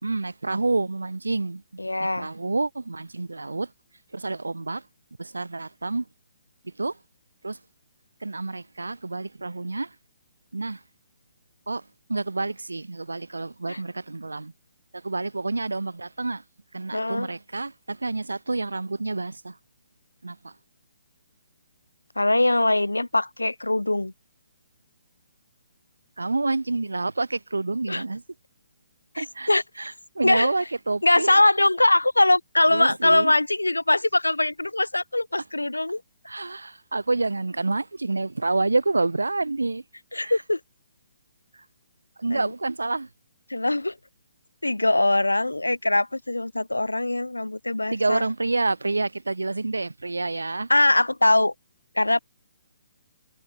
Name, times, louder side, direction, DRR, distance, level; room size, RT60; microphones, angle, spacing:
voice 1, 0.0-1.6 2.0-3.7 4.1-4.8 5.2-6.1 6.6-7.0 7.4-7.6 8.2-10.0 10.5-10.8 11.7-11.8 12.1-14.5 14.9-16.4 16.7-19.6 20.2-20.5 26.2-28.2 29.2-31.4 32.7-33.3 36.3-39.8 40.2-40.4 42.2-43.1 47.9-50.7, right 3 dB, 80° right, 2.1 m, -28 dB
voice 2, 1.8-2.3 13.7-13.8 16.9-17.3 22.2-24.1 27.9-28.0 29.2-29.6 30.2-30.5 31.0-36.0 40.1-40.6 42.3-42.5 43.5-43.9 44.6-48.2 50.7-51.5 52.0-52.2, left 2 dB, 90° left, 0.3 m, -22 dB
figure-of-eight pair, 135°, 0 cm